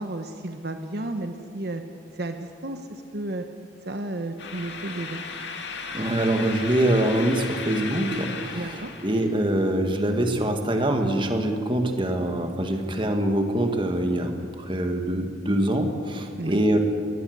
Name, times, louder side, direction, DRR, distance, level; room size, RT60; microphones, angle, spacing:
voice 1, 0.0-1.8 2.1-3.5 3.8-5.2 8.5-8.9 16.4-16.6, right 2 dB, 55° right, 6 dB, 1.2 m, -33 dB
sound 1, 4.4-9.3, left 4 dB, 65° left, 2.3 m, -35 dB
voice 2, 5.9-16.8, right 1 dB, 25° right, 4 dB, 2.0 m, -24 dB
22.0 x 18.5 x 8.1 m, 2.3 s
head